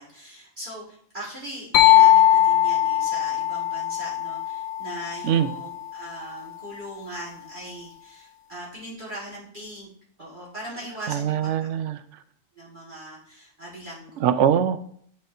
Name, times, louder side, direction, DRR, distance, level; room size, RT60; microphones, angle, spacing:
voice 1, 0.0-9.9 10.2-11.4 12.6-14.5, right 1 dB, 40° right, -7 dB, 2.1 m, -40 dB
sound 1, 1.7-5.4, left 12 dB, 90° left, 1.0 m, -19 dB
voice 2, 11.1-12.0 14.2-14.8, right 9 dB, 70° right, 12 dB, 0.8 m, -22 dB
11.5 x 4.2 x 2.6 m, 0.63 s
omnidirectional pair, 1.4 m